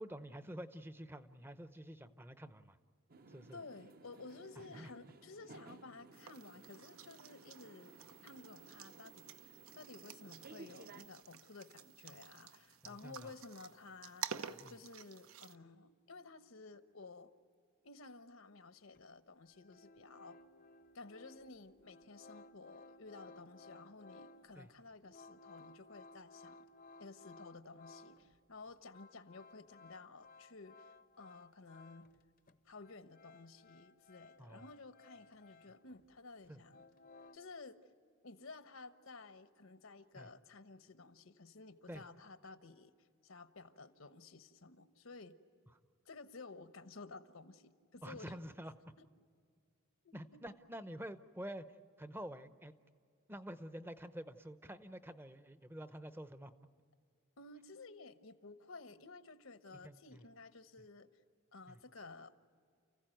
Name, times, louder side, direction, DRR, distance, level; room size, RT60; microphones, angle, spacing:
voice 1, 0.0-2.8 3.3-3.6 4.7-4.9 12.8-13.3 14.6-14.8 24.6-24.7 34.4-34.6 36.5-36.6 40.2-40.3 41.9-42.0 48.0-48.7 50.1-51.7 52.0-52.7 53.3-56.5 59.8-60.2 61.7-61.8, equal, 10° right, 12 dB, 0.7 m, -48 dB
sound 1, 3.1-11.0, right 2 dB, 45° right, 0.8 m, -58 dB
voice 2, 3.5-7.9 8.2-17.3 17.8-20.4 20.9-26.7 27.0-30.9 31.2-32.1 32.6-36.9 37.3-37.8 38.2-42.9 43.2-45.4 46.0-48.4 49.0-49.1 50.0-50.4 57.4-61.1 61.5-62.4, left 3 dB, 75° left, 11 dB, 1.1 m, -54 dB
sound 2, 6.1-15.6, right 8 dB, 80° right, 0.9 m, -51 dB
sound 3, 18.9-19.0 19.4-28.4 28.7-32.2 32.5-36.1 36.4-37.4, left 3 dB, 40° left, 0.7 m, -59 dB
29.5 x 15.5 x 9.1 m, 2.2 s
head